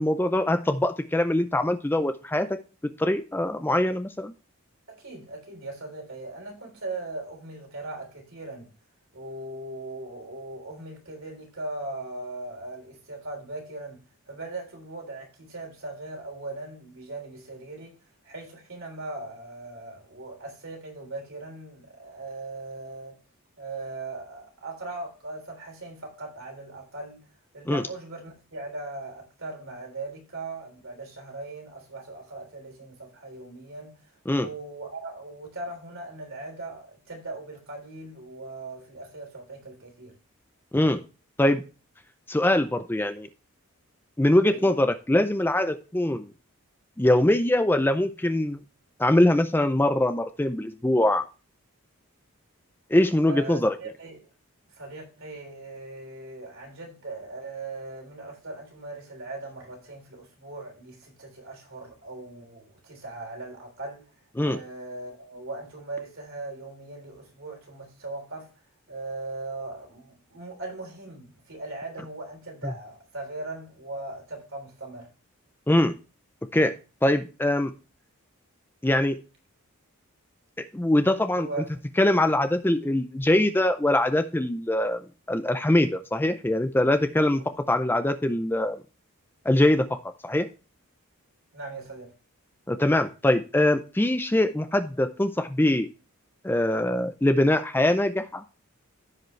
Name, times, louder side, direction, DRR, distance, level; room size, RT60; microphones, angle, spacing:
voice 1, 0.0-2.5 3.0-4.3 27.7-27.8 34.3-34.5 40.7-41.0 41.4-41.6 42.3-43.3 44.2-46.3 47.0-48.6 49.0-51.2 52.9-53.7 64.4-64.6 75.7-75.9 76.5-76.7 77.0-77.7 78.8-79.2 80.7-81.5 82.0-85.0 85.3-87.4 87.7-88.8 89.5-90.5 92.7-95.9 96.4-98.4, left 1 dB, 10° left, 0.4 m, -23 dB
voice 2, 4.9-8.7 9.1-18.0 18.2-23.2 23.6-27.3 27.5-34.0 34.3-40.1 44.5-44.7 53.3-54.3 54.7-64.1 64.4-68.6 68.9-75.1 81.3-81.7 87.3-87.4 91.5-92.1, right 2 dB, 65° right, 3.5 m, -39 dB
15.0 x 5.1 x 3.1 m
head